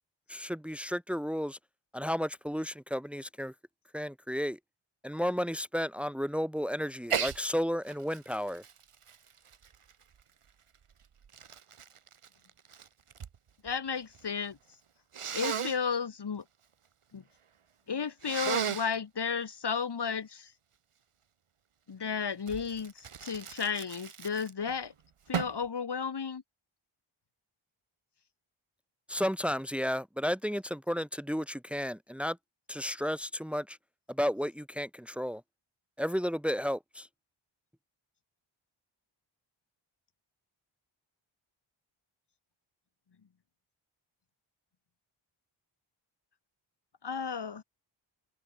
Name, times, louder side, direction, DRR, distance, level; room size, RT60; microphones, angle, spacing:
voice 1, 0.3-1.6 1.9-3.5 3.9-4.6 5.0-8.6 29.1-32.4 32.7-33.8 34.1-35.4 36.0-37.1, equal, ahead, 2.5 m, -33 dB
Sneeze, 7.1-7.4 7.9-10.2 10.9-13.4 13.6-14.3 15.1-15.8 18.2-18.9 22.5-24.7 25.3-25.7, right 7 dB, 85° right, 3.6 m, -36 dB
voice 2, 13.6-14.6 15.3-16.4 17.1-17.2 17.9-20.5 21.9-24.9 25.3-26.4 47.0-47.6, left 6 dB, 55° left, 2.1 m, -33 dB
wide cardioid pair, 85°, 49 cm